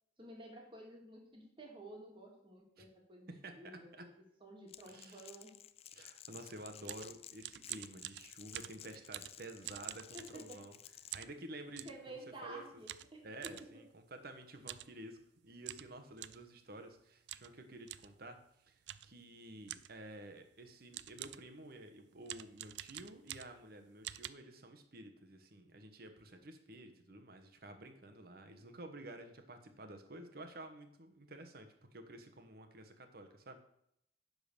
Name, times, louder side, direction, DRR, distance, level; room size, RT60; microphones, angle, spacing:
voice 1, 0.2-3.3 3.5-4.1 4.4-5.5 10.1-10.6 11.8-13.5, right 1 dB, 30° right, 0 dB, 2.1 m, -52 dB
voice 2, 3.3-4.1 4.9-5.3 5.9-10.8 11.1-12.6 13.2-15.2 15.4-33.6, right 1 dB, 55° right, 6 dB, 1.1 m, -51 dB
Crackle, 4.7-11.2, left 11 dB, 35° left, 0.3 m, -55 dB
sound 1, 6.6-10.7 11.1-12.0 12.9-13.7 14.6-14.9 15.2-15.3 15.6-16.5 17.3-17.5 17.9-18.1 18.9-19.2 19.7-20.0 20.6-20.7 20.9-21.5 22.2-23.7 24.0-24.3, right 13 dB, 70° right, 0.4 m, -47 dB
10.5 x 4.0 x 6.6 m, 0.75 s
head